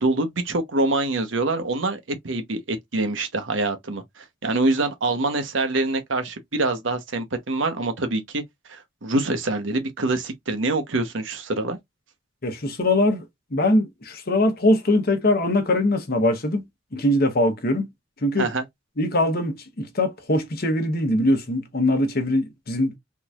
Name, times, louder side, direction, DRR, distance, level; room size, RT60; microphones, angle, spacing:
voice 1, 0.0-8.4 8.7-11.8 18.4-18.6, right 2 dB, 75° right, 1.0 m, -25 dB
voice 2, 12.4-13.2 13.5-16.6 16.9-17.8 18.2-18.5 19.0-23.0, left 1 dB, 50° left, 1.0 m, -22 dB
3.6 x 3.0 x 2.4 m
head